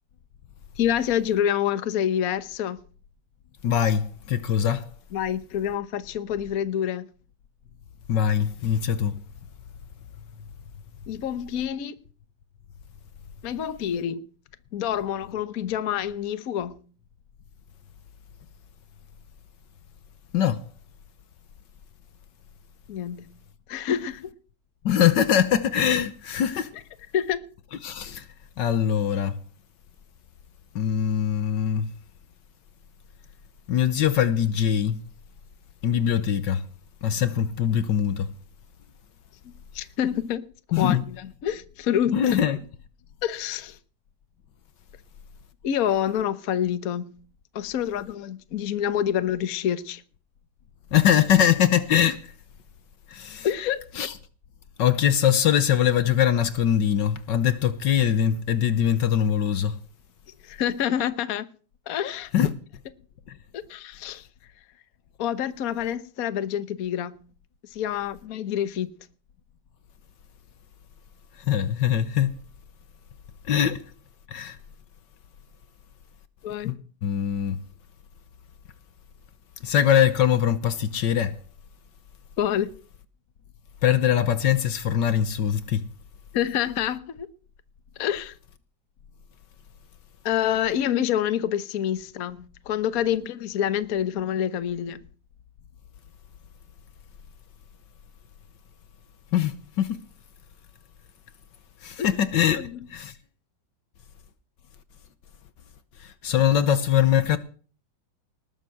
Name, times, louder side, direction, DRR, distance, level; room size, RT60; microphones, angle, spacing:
voice 1, 0.8-2.8 5.1-7.1 11.1-12.0 13.4-14.2 14.7-16.8 22.9-23.3 23.7-24.3 27.1-27.4 39.7-40.4 40.8-42.4 43.2-43.8 45.6-47.1 47.5-50.0 53.4-53.8 60.4-61.5 61.9-62.3 63.5-64.3 65.2-67.1 67.7-68.9 76.4-76.7 82.4-82.7 86.3-87.3 88.0-88.3 90.2-95.0 102.0-102.1 102.5-102.8, left 10 dB, 55° left, 1.3 m, -27 dB
voice 2, 3.6-4.9 8.1-9.1 20.3-20.6 24.8-26.7 27.8-28.2 28.6-29.3 30.7-31.9 33.7-35.0 35.8-36.6 37.0-38.3 40.7-41.0 42.1-42.6 50.9-52.2 53.1-53.5 54.0-54.1 54.8-59.7 62.3-62.5 71.5-72.3 73.5-73.8 74.3-74.6 76.6-77.6 79.6-81.3 83.8-85.8 99.3-99.5 99.8-99.9 101.8-103.1 106.0-107.4, left 9 dB, 70° left, 1.5 m, -22 dB
19.5 x 7.4 x 7.7 m
omnidirectional pair, 2.1 m